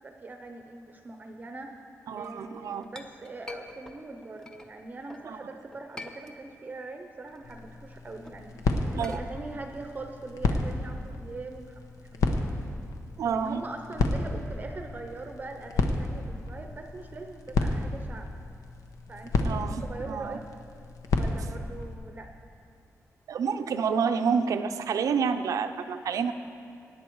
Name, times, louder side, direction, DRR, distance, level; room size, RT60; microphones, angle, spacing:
voice 1, 0.0-1.8 2.2-8.6 8.9-12.5 13.2-18.3 19.1-20.5 21.1-22.3, right 3 dB, 30° right, 5 dB, 0.7 m, -42 dB
voice 2, 2.1-2.9 5.3-5.4 8.9-9.2 13.2-13.6 19.4-20.4 23.3-26.3, right 6 dB, 80° right, 9 dB, 0.6 m, -29 dB
Chink clink, 2.4-5.3 5.7-6.8 7.1-11.2, left 2 dB, 10° left, 0.7 m, -47 dB
sound 1, 7.4-21.9, left 3 dB, 80° left, 1.0 m, -32 dB
17.0 x 9.4 x 4.7 m, 2.4 s
wide cardioid pair, 155°, 6 cm